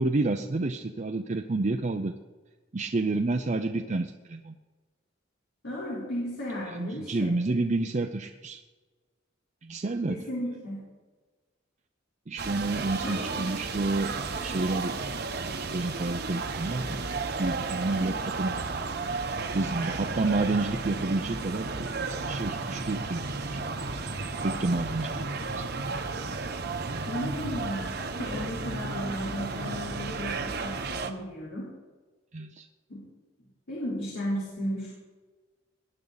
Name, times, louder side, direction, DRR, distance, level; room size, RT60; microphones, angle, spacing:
voice 1, 0.0-2.1 2.7-4.5 6.7-8.6 9.6-10.3 12.3-15.0 15.4-17.0 17.4-18.5 19.5-22.0 22.3-23.6 24.4-25.2 25.6-25.7 32.3-32.7, right 2 dB, 40° right, 5 dB, 0.6 m, -29 dB
voice 2, 5.6-7.3 10.1-10.8 13.0-13.5 27.1-27.8 28.2-31.7 32.9-33.0 33.7-34.9, equal, 90° left, -7 dB, 3.8 m, -34 dB
sound 1, 12.4-31.1, right 3 dB, 55° right, 1.1 m, -33 dB
19.5 x 9.9 x 4.0 m, 1.3 s
head